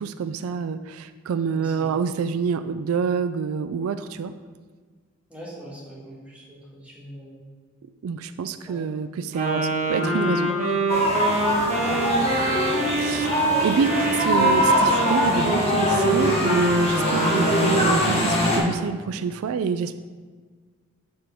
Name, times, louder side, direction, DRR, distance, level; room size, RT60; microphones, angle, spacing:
voice 1, 0.0-4.3 8.0-10.5 12.9-19.9, right 6 dB, 85° right, 12 dB, 0.3 m, -27 dB
voice 2, 1.5-1.9 5.3-7.4 8.7-8.8 11.8-12.6 13.8-14.4, right 1 dB, 5° right, -7 dB, 2.0 m, -40 dB
Wind instrument woodwind instrument, 9.3-17.9, right 2 dB, 35° right, 1.7 m, -25 dB
sound 1, 10.9-18.6, equal, 30° left, 1.3 m, -22 dB
7.3 x 4.5 x 4.8 m, 1.5 s
head